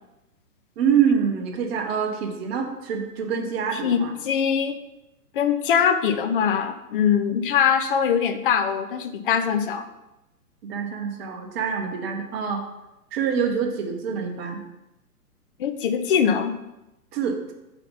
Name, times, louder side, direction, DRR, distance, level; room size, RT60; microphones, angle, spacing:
voice 1, 0.8-4.1 10.6-12.6 13.1-14.6 17.1-17.5, right 7 dB, 40° right, 2 dB, 1.2 m, -25 dB
voice 2, 3.7-4.8 5.3-9.8 15.6-16.6, left 7 dB, 35° left, 8 dB, 0.6 m, -22 dB
5.6 x 4.1 x 5.4 m, 0.95 s
figure-of-eight pair, 120°, 47 cm